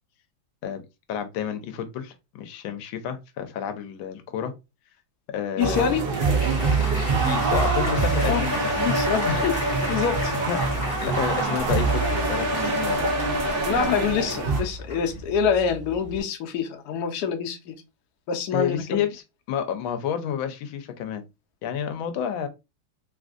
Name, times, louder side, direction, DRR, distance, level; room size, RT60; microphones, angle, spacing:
voice 1, 1.1-4.5 5.3-5.9 7.2-8.7 9.2-9.4 10.5-10.6 11.0-13.1 18.5-21.2 21.6-22.5, left 8 dB, 90° left, 1.4 m, -30 dB
voice 2, 5.6-6.0 8.3-8.5 8.8-9.6 9.9-10.3 13.6-17.8 18.3-19.0, left 7 dB, 70° left, 1.0 m, -26 dB
Applause, 5.6-16.2, left 2 dB, 25° left, 0.7 m, -34 dB
sound 1, 5.6-14.6, right 3 dB, 85° right, 0.5 m, -24 dB
3.6 x 2.5 x 2.4 m
omnidirectional pair, 2.1 m